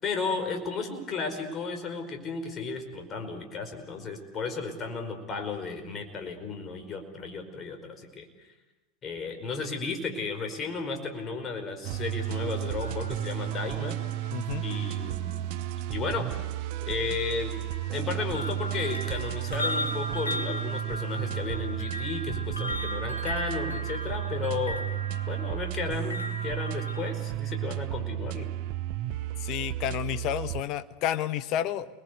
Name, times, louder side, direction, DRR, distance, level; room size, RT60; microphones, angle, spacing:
voice 1, 0.0-8.5 9.0-14.0 14.6-15.5 15.9-16.3 16.8-17.6 17.9-24.9 25.3-28.5, left 4 dB, 35° left, 6 dB, 5.0 m, -34 dB
sound 1, 11.8-30.6, right 14 dB, 55° right, 0.9 m, -33 dB
sound 2, 12.2-15.3 16.3-16.5 17.2-27.1, left 1 dB, 90° left, 2.9 m, -37 dB
voice 2, 14.3-14.6 29.4-31.9, left 11 dB, 50° left, 12 dB, 1.2 m, -30 dB
29.0 x 21.0 x 8.2 m, 1.0 s
figure-of-eight pair, 80°, 0 cm